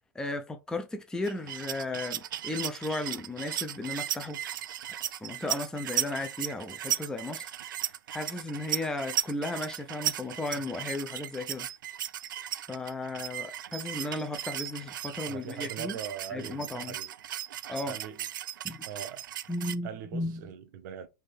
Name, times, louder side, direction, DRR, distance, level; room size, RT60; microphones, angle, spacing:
voice 1, 0.1-4.4 4.8-5.0 5.2-7.5 8.1-11.7 12.7-15.9 16.3-16.9 17.7-18.0 18.6-18.8 19.5-20.5, left 2 dB, 5° left, 0.5 m, -35 dB
sound 1, 1.2-19.7, right 11 dB, 75° right, 0.4 m, -36 dB
voice 2, 15.2-17.1 17.9-18.3 18.9-19.3 19.8-21.1, right 8 dB, 60° right, 0.8 m, -41 dB
3.5 x 2.7 x 4.1 m
hypercardioid pair, 110°, 11 cm